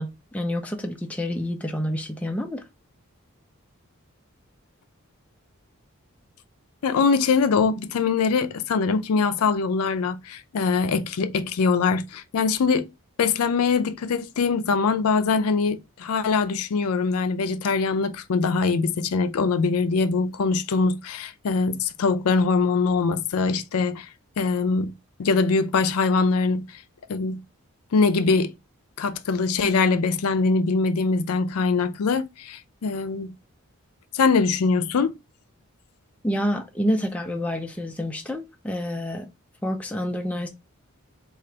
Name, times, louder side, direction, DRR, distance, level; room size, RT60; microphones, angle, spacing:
voice 1, 0.0-2.6 36.2-39.3 39.6-40.5, equal, 5° left, 0.4 m, -28 dB
voice 2, 6.8-12.9 13.2-24.1 24.4-24.9 25.2-26.6 27.1-27.4 27.9-28.5 29.0-33.3 34.1-35.1, left 4 dB, 80° left, 0.4 m, -23 dB
3.9 x 2.4 x 3.3 m
head